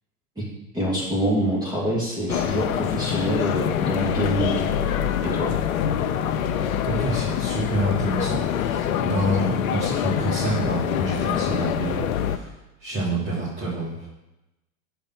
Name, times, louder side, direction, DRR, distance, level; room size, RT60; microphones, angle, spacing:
voice 1, 0.7-4.7 5.2-5.5, right 1 dB, 10° right, -6 dB, 2.8 m, -25 dB
sound 1, 2.3-12.4, left 9 dB, 70° left, 0.8 m, -25 dB
voice 2, 6.8-12.5 12.8-14.1, right 1 dB, 30° right, -8 dB, 3.3 m, -28 dB
7.0 x 5.1 x 6.0 m, 0.95 s
hypercardioid pair, 100°, 43 cm